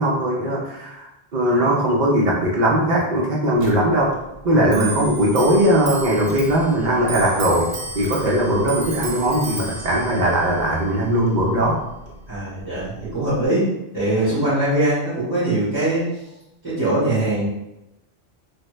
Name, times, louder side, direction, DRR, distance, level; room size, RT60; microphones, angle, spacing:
voice 1, 0.0-4.1 4.4-7.7 7.9-11.8, right 1 dB, 50° right, -3 dB, 0.6 m, -19 dB
Clock, 3.6-13.5, right 3 dB, 80° right, 0.9 m, -34 dB
voice 2, 4.5-4.9 12.3-13.7 13.9-16.0 16.6-17.5, right 1 dB, 25° right, -13 dB, 1.4 m, -22 dB
3.2 x 2.2 x 3.1 m, 0.90 s
omnidirectional pair, 1.1 m